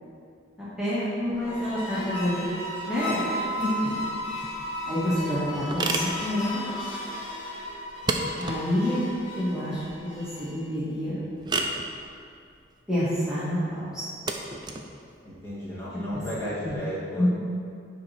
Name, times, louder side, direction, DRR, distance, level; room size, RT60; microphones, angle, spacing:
voice 1, 0.8-2.4 2.9-3.2 3.6-4.0 4.8-6.6 8.4-9.0 9.4-11.2 12.9-14.0 16.6-16.8 17.2-17.3, left 1 dB, 5° right, -12 dB, 1.9 m, -28 dB
sound 1, 1.3-10.7, equal, 90° left, 1.8 m, -35 dB
sound 2, 4.3-16.7, right 3 dB, 20° right, 0.5 m, -35 dB
voice 2, 15.2-17.3, equal, 15° left, -10 dB, 2.0 m, -33 dB
9.5 x 4.4 x 5.8 m, 2.4 s
head